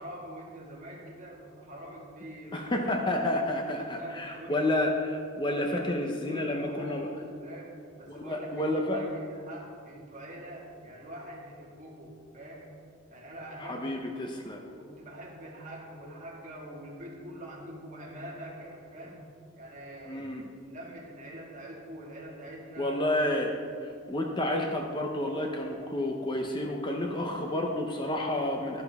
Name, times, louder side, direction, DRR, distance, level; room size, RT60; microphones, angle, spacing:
voice 1, 0.0-2.6 3.1-3.3 3.7-4.6 5.5-7.1 7.4-12.7 13.1-14.0 14.8-20.3 20.6-23.0, right 1 dB, 40° right, -3 dB, 2.0 m, -44 dB
voice 2, 2.5-7.1 8.1-9.0 13.6-14.6 20.1-20.4 22.8-23.5 23.8-28.8, left 1 dB, 25° left, 2 dB, 0.7 m, -30 dB
11.5 x 11.0 x 3.6 m, 2.3 s
head